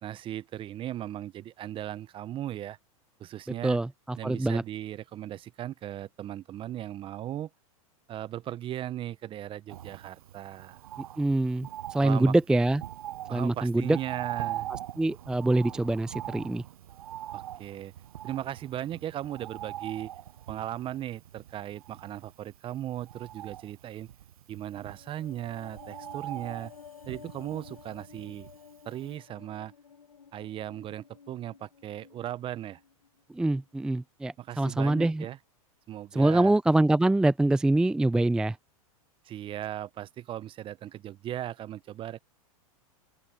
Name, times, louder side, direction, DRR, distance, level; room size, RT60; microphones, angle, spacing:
voice 1, 0.0-2.8 3.2-3.8 4.2-7.5 8.1-10.8 12.0-12.3 13.3-14.7 17.3-17.9 18.2-20.1 20.5-24.1 24.5-26.7 27.1-28.5 28.8-29.7 30.3-32.8 34.4-35.4 35.9-36.6 39.2-42.2, right 12 dB, 30° right, 0.9 m, -37 dB
voice 2, 3.6-4.6 11.2-12.8 13.3-14.0 15.0-16.6 33.3-35.2 36.1-38.6, right 2 dB, 5° right, 0.4 m, -25 dB
Bird, 9.7-28.8 29.1-29.2, right 12 dB, 75° right, 0.7 m, -42 dB
sound 1, 24.8-33.2 33.5-33.7, left 7 dB, 90° left, 1.9 m, -52 dB
open air
hypercardioid pair, 115°, 18 cm